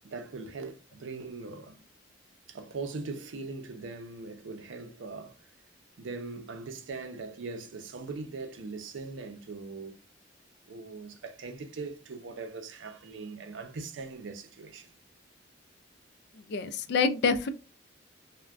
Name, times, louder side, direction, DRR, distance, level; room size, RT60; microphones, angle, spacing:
voice 1, 0.0-1.8 2.5-5.5 6.0-10.0 10.7-14.9, right 3 dB, 85° right, 0.5 m, -40 dB
voice 2, 16.5-17.5, left 5 dB, 60° left, 0.4 m, -26 dB
2.4 x 2.1 x 3.3 m
head